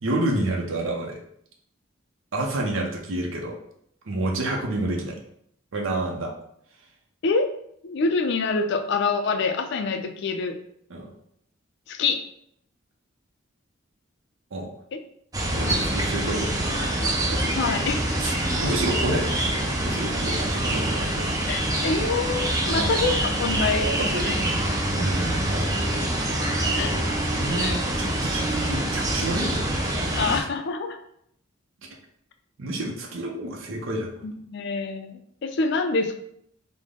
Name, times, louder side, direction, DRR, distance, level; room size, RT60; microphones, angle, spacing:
voice 1, 0.0-1.2 2.3-3.6 4.1-5.2 5.7-6.3 10.9-11.1 14.5-14.7 15.5-16.9 17.3-17.4 18.2-18.3 18.6-21.3 22.7-23.3 23.8-24.5 24.9-25.7 27.3-30.4 32.6-34.3, right 2 dB, 80° right, 1 dB, 0.6 m, -29 dB
voice 2, 7.8-10.6 11.9-12.2 17.5-18.7 19.1-19.2 21.5-23.9 24.2-24.3 26.8-27.0 27.6-27.7 30.2-31.0 34.2-36.1, left 4 dB, 60° left, 7 dB, 0.4 m, -26 dB
sound 1, 15.3-30.4, right 1 dB, 20° right, 0.5 m, -25 dB
3.4 x 2.0 x 3.6 m, 0.71 s
head